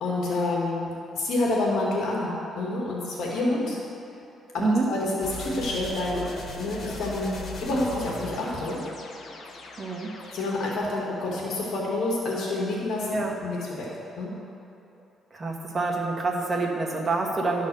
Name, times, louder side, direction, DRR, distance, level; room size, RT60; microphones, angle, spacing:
voice 1, 0.0-3.8 4.5-6.2 6.6-8.8 10.3-13.9 14.2-14.3, left 2 dB, 75° left, -3 dB, 1.7 m, -28 dB
sound 1, 5.2-10.8, left 2 dB, 60° left, 1.2 m, -39 dB
voice 2, 9.8-10.1 13.1-13.3 15.3-17.7, right 3 dB, 30° right, 0 dB, 1.4 m, -27 dB
12.0 x 4.1 x 6.7 m, 2.7 s
cardioid pair, 90°, 0 cm